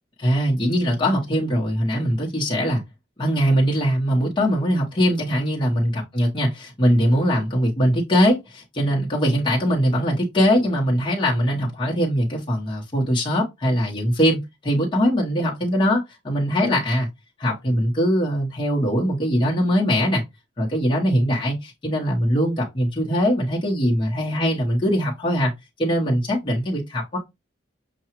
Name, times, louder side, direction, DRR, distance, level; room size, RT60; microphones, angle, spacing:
voice 1, 0.2-2.8 3.2-17.1 17.4-20.2 20.6-25.5 25.8-27.2, equal, 25° left, 0.9 m, -21 dB
5.7 x 2.3 x 2.9 m
head